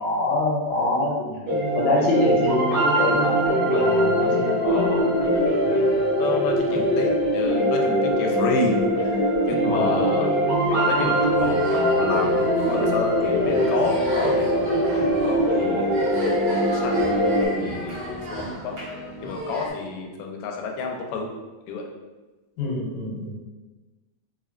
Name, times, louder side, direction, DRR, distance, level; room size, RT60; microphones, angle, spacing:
voice 1, 0.0-1.4 1.8-3.3 3.6-5.1 9.6-9.9 22.6-23.4, left 2 dB, 70° left, -4 dB, 2.0 m, -25 dB
sound 1, 1.5-17.5, equal, 55° right, 1.1 m, -22 dB
voice 2, 4.6-5.0 5.7-10.3 10.7-11.6 12.0-12.3 12.7-15.0 15.3-15.9 16.7-18.8 19.2-21.3 21.7-21.9, left 4 dB, 90° left, 1 dB, 2.2 m, -30 dB
sound 2, 11.4-19.7, right 1 dB, 85° right, 1.2 m, -34 dB
5.6 x 2.1 x 2.5 m, 1.2 s
omnidirectional pair, 3.7 m